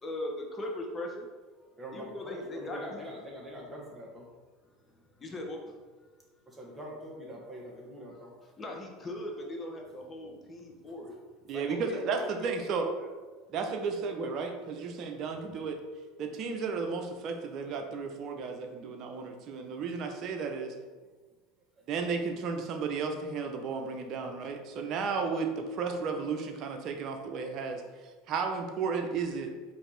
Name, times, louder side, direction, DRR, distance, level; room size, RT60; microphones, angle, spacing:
voice 1, 0.0-1.3 1.9-3.0 4.7-5.8 8.6-11.2 11.5-13.1 14.9-15.3, left 1 dB, 25° left, 1 dB, 1.0 m, -40 dB
voice 2, 1.8-4.3 6.5-8.3 11.1-11.2 13.3-13.5 20.5-20.6 21.8-21.9, equal, 15° right, -3 dB, 1.5 m, -44 dB
voice 3, 11.5-12.9 13.5-15.8 16.2-20.7 21.9-27.8 28.3-29.5, right 5 dB, 50° right, 4 dB, 0.6 m, -33 dB
4.5 x 2.8 x 3.9 m, 1.3 s
hypercardioid pair, 85°, 0 cm